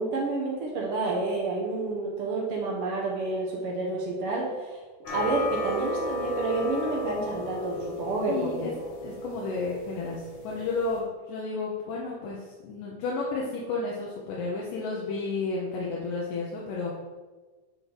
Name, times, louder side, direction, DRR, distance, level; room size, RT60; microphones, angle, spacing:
voice 1, 0.0-4.8 5.1-8.7, right 3 dB, 75° right, -2 dB, 1.3 m, -29 dB
sound 1, 5.1-11.0, left 1 dB, 65° left, 2.4 m, -34 dB
voice 2, 8.3-8.7 9.0-16.9, left 3 dB, 80° left, -4 dB, 2.5 m, -32 dB
10.5 x 3.8 x 3.3 m, 1.3 s
omnidirectional pair, 3.8 m